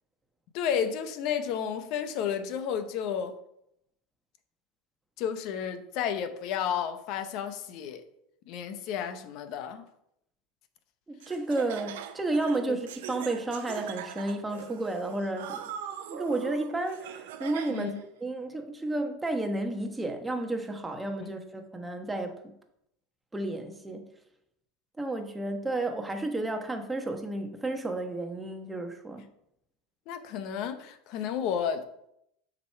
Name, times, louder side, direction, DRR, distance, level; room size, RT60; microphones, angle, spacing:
voice 1, 0.5-3.4 5.2-8.0 8.5-9.9 12.7-12.8 17.7-18.0 21.2-21.3 30.1-31.9, left 8 dB, 55° left, 0.9 m, -32 dB
voice 2, 11.1-15.6 16.1-17.9 18.2-22.5 23.3-24.1 25.0-29.3, right 2 dB, 10° right, 1.2 m, -32 dB
Laughter, 11.2-18.0, right 9 dB, 80° right, 0.7 m, -41 dB
6.9 x 5.0 x 4.5 m
supercardioid pair, 110°, 0 cm